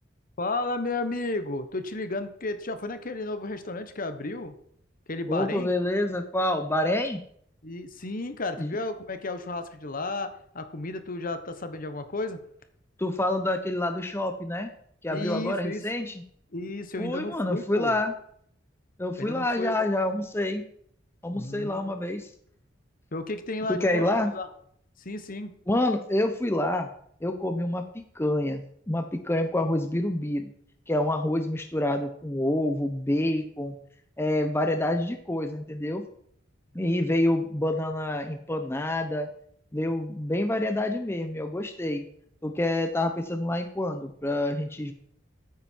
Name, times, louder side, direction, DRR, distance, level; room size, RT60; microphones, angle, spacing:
voice 1, 0.4-4.5 5.1-5.7 7.6-10.3 10.5-12.4 15.1-15.8 16.5-18.0 19.2-19.8 21.3-22.0 23.1-24.5 25.0-25.5, left 2 dB, 50° left, 9 dB, 1.2 m, -33 dB
voice 2, 5.3-7.2 8.6-8.7 13.0-14.7 15.0-16.2 17.0-18.1 19.0-20.6 21.2-22.3 23.7-24.3 25.7-26.9 27.2-27.8 28.1-30.5 30.9-33.8 34.2-36.0 36.7-39.3 39.7-42.1 42.4-44.9, left 1 dB, 15° left, 7 dB, 0.8 m, -27 dB
14.5 x 9.2 x 4.6 m, 0.67 s
head